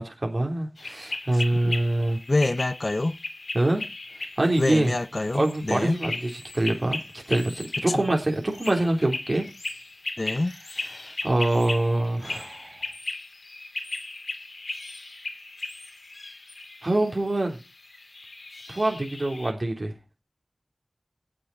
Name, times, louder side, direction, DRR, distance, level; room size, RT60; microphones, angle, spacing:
voice 1, 0.0-2.2 3.5-3.8 4.4-4.9 5.3-9.4 10.9-12.8 16.8-17.6 18.7-19.9, right 1 dB, 45° right, 3.4 m, -25 dB
sound 1, 0.8-19.5, left 3 dB, 90° left, 2.5 m, -37 dB
voice 2, 1.3-1.7 2.3-3.2 4.6-6.0 10.2-10.5, left 2 dB, 45° left, 0.9 m, -26 dB
17.0 x 7.9 x 4.1 m
wide cardioid pair, 55°, 0 cm